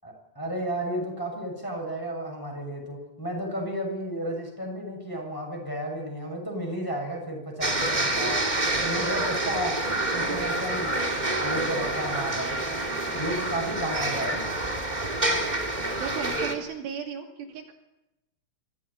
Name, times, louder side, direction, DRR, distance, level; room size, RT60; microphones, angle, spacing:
voice 1, 0.0-8.4 8.8-9.8 10.1-11.1 11.4-12.7 13.1-14.5, equal, 5° left, 1 dB, 6.3 m, -33 dB
sound 1, 7.6-16.5, right 2 dB, 45° right, 0.5 m, -27 dB
voice 2, 16.0-17.7, right 7 dB, 70° right, 1 dB, 4.9 m, -35 dB
25.0 x 16.0 x 10.0 m, 0.93 s
omnidirectional pair, 5.8 m